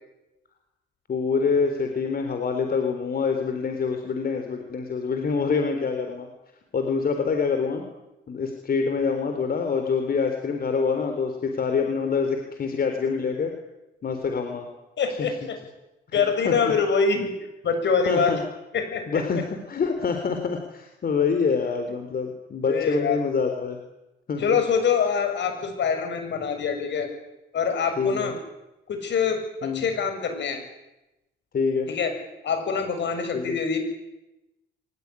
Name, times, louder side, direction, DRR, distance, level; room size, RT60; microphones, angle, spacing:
voice 1, 1.1-6.3 6.7-7.9 8.3-13.5 14.0-14.7 15.2-15.3 16.1-16.7 18.0-18.4 19.1-19.4 19.7-23.8 24.3-24.4 28.0-28.3 29.6-29.8 31.5-31.9 33.3-33.6, left 5 dB, 50° left, 5 dB, 4.0 m, -26 dB
voice 2, 15.0-15.6 16.1-17.3 17.6-18.3 18.7-19.2 22.7-23.2 24.4-27.1 27.5-28.4 28.9-30.6 31.9-32.1 32.4-33.8, left 6 dB, 65° left, 7 dB, 7.3 m, -24 dB
23.5 x 21.0 x 9.9 m, 0.97 s
cardioid pair, 90°, 20 cm